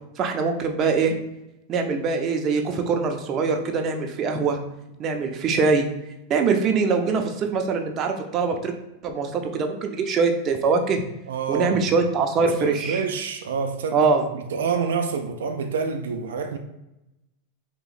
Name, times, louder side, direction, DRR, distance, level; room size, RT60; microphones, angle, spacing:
voice 1, 0.2-1.1 1.7-4.6 5.0-5.9 6.3-8.7 9.0-11.0 11.5-13.0 13.9-14.2, right 4 dB, 35° right, 0.6 m, -23 dB
voice 2, 11.3-11.9 12.6-14.1 14.3-16.6, right 5 dB, 85° right, 0.4 m, -27 dB
2.9 x 2.9 x 4.0 m
hypercardioid pair, 120°, 0 cm